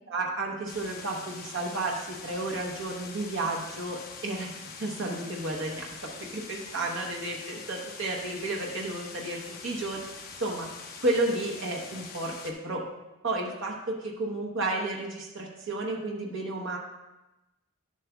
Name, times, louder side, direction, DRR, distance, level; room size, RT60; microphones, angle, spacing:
voice 1, 0.1-4.5 4.8-10.0 10.4-10.7 11.0-12.8 13.2-16.8, right 2 dB, 60° right, -1 dB, 1.0 m, -32 dB
sound 1, 0.7-12.5, left 5 dB, 45° left, 1.0 m, -44 dB
10.5 x 7.4 x 2.3 m, 1.0 s
head